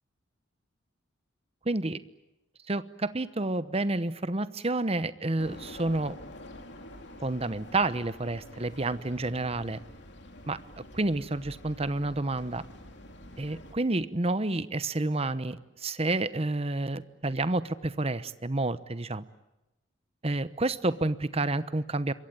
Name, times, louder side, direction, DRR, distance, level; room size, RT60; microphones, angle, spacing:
voice 1, 1.6-2.0 2.7-6.1 7.2-9.8 10.5-10.6 10.9-12.6 13.4-19.2 20.2-22.1, right 2 dB, 30° right, 14 dB, 0.9 m, -29 dB
sound 1, 5.4-13.7, left 1 dB, 60° left, 3.5 m, -47 dB
26.5 x 23.0 x 9.3 m, 0.95 s
head